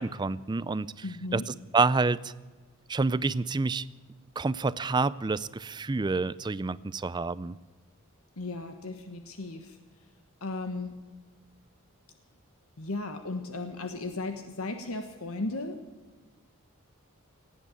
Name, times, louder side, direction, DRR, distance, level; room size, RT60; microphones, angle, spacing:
voice 1, 0.0-0.9 1.3-2.3 2.9-3.9 4.4-7.6, right 3 dB, 20° right, 18 dB, 0.4 m, -28 dB
voice 2, 1.0-1.5 8.4-9.8 10.4-11.0 12.8-15.8, left 2 dB, 80° left, 7 dB, 1.3 m, -35 dB
18.0 x 8.6 x 8.4 m, 1.3 s
head